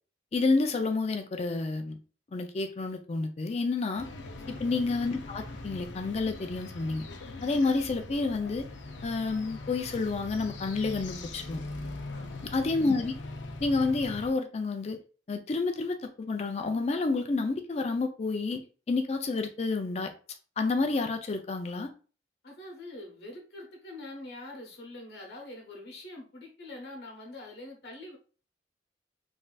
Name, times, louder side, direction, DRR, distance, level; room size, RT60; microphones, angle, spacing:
voice 1, 0.3-2.0 2.3-4.1 4.5-7.1 7.4-8.7 9.0-11.6 12.4-13.1 13.6-15.0 15.3-18.6 18.9-20.1 20.6-21.9, left 3 dB, 35° left, 6 dB, 0.4 m, -29 dB
sound 1, 3.9-14.3, left 2 dB, 90° left, 0.5 m, -41 dB
voice 2, 12.1-12.5 22.4-28.2, left 2 dB, 60° left, 0 dB, 1.0 m, -45 dB
3.2 x 2.6 x 2.3 m, 0.37 s
head